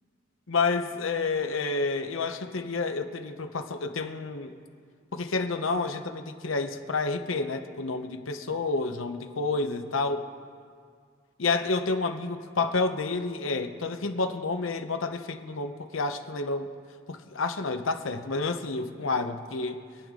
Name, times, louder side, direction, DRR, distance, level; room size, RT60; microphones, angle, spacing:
voice 1, 0.5-4.5 5.1-10.2 11.4-16.7 17.1-19.8, left 3 dB, 90° left, 7 dB, 0.9 m, -29 dB
26.0 x 9.0 x 3.7 m, 2.1 s
head